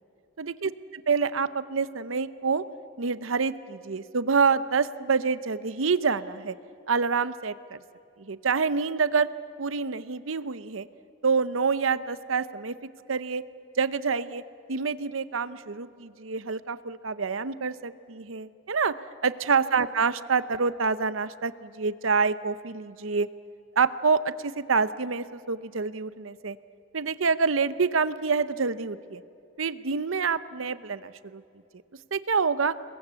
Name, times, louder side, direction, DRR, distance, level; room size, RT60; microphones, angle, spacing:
voice 1, 0.4-0.7 1.1-2.6 3.0-6.5 6.9-7.8 8.2-9.3 9.6-10.9 11.2-12.7 13.1-13.4 13.8-14.4 14.7-18.9 19.2-23.3 23.8-26.6 26.9-29.2 29.6-31.4 32.1-32.7, right 5 dB, 85° right, 15 dB, 0.8 m, -27 dB
28.0 x 21.5 x 8.3 m, 2.7 s
head